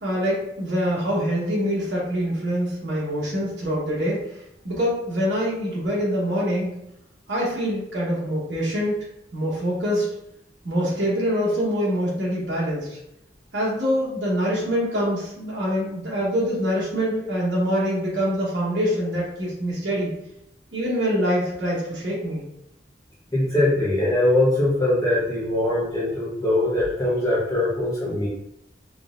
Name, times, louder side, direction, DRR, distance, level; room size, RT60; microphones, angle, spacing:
voice 1, 0.0-4.3 4.6-6.8 7.3-9.0 9.3-10.1 10.6-13.0 13.5-20.1 20.7-22.4, equal, 75° right, -6 dB, 1.2 m, -25 dB
voice 2, 23.3-28.3, left 1 dB, 20° left, -9 dB, 0.9 m, -22 dB
3.8 x 3.4 x 2.5 m, 0.81 s
head